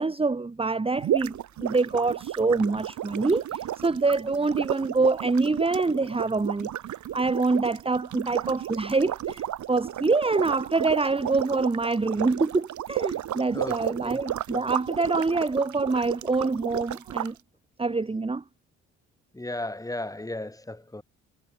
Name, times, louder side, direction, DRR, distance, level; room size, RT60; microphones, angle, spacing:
voice 1, 0.0-6.7 7.1-17.4 17.8-18.4, right 3 dB, 20° right, 1.8 m, -25 dB
sound 1, 1.0-17.3, right 12 dB, 70° right, 3.3 m, -33 dB
voice 2, 19.3-21.0, left 1 dB, 10° left, 7.8 m, -34 dB
cardioid pair, 90°, 30 cm